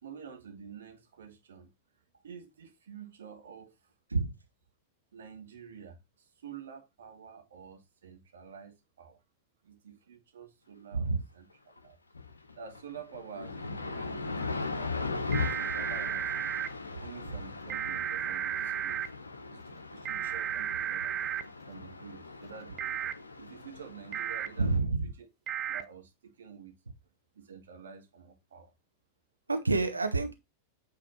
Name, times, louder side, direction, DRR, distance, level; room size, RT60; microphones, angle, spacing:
voice 1, 0.0-1.7 2.2-3.9 5.1-9.2 9.6-11.5 11.8-12.0 12.6-16.5 17.0-19.0 19.5-21.1 21.7-24.9 25.2-25.3 25.7-26.7 27.3-28.7, right 7 dB, 65° right, 2.0 m, -49 dB
sound 1, 11.8-11.9 12.1-24.8, left 4 dB, 75° left, 0.9 m, -39 dB
sound 2, 15.3-16.7 17.7-19.1 20.1-21.4 22.8-23.1 24.1-24.5 25.5-25.8, right 10 dB, 35° right, 0.6 m, -33 dB
voice 2, 24.6-25.1 29.5-30.4, right 3 dB, 80° right, 1.0 m, -28 dB
8.8 x 4.1 x 4.2 m
figure-of-eight pair, 90°, 0 cm